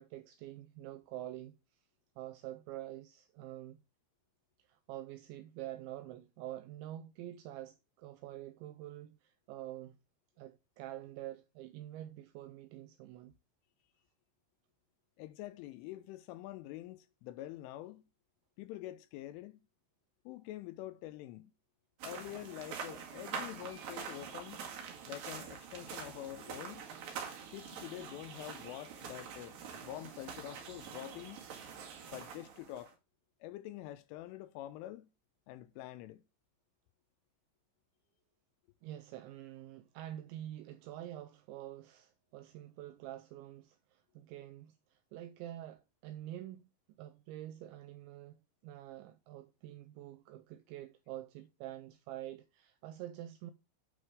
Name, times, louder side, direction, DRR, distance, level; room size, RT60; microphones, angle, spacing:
voice 1, 0.0-1.9 2.2-3.8 4.6-10.0 10.4-13.3 38.8-48.4 48.6-53.5, right 13 dB, 85° right, 2.6 m, -47 dB
voice 2, 15.2-18.0 18.6-19.6 20.3-21.5 22.0-24.7 25.1-26.8 27.5-31.4 32.1-33.0 33.4-35.1 35.5-36.2, left 14 dB, 85° left, 2.9 m, -46 dB
sound 1, 22.0-32.9, right 6 dB, 60° right, 3.0 m, -45 dB
9.5 x 6.2 x 3.5 m
omnidirectional pair, 5.9 m